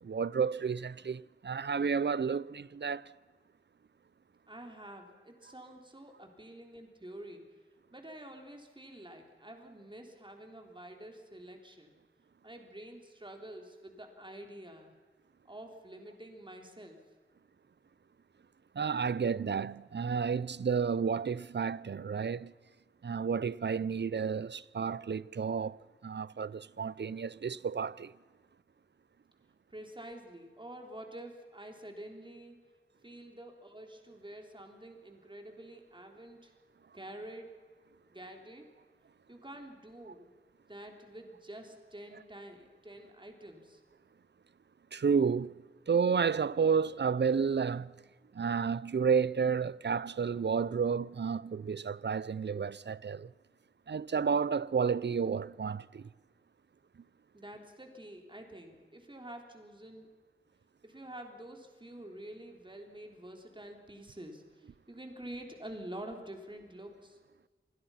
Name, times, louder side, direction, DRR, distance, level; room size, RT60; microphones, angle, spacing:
voice 1, 0.0-3.1 18.7-22.5 23.0-28.1 44.9-47.9 48.3-53.3 53.9-56.1, right 6 dB, 60° right, 0.6 m, -31 dB
voice 2, 4.5-7.4 7.9-11.9 12.4-14.9 15.5-17.0 29.7-32.6 33.0-36.5 36.9-37.5 38.1-38.7 39.3-40.3 40.7-43.8 57.3-60.1 60.8-67.2, right 1 dB, 25° right, 3.8 m, -48 dB
26.5 x 21.0 x 5.8 m
wide cardioid pair, 65°, 20 cm